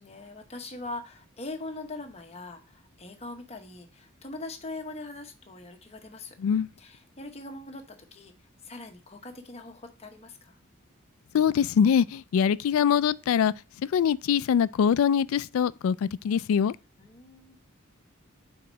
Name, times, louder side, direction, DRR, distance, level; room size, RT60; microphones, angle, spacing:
voice 1, 0.0-6.3 6.8-8.3 8.6-10.6 17.0-17.6, left 2 dB, 30° left, 0.9 m, -41 dB
voice 2, 11.3-13.5 13.9-16.7, left 7 dB, 70° left, 0.3 m, -23 dB
4.8 x 4.4 x 5.0 m
head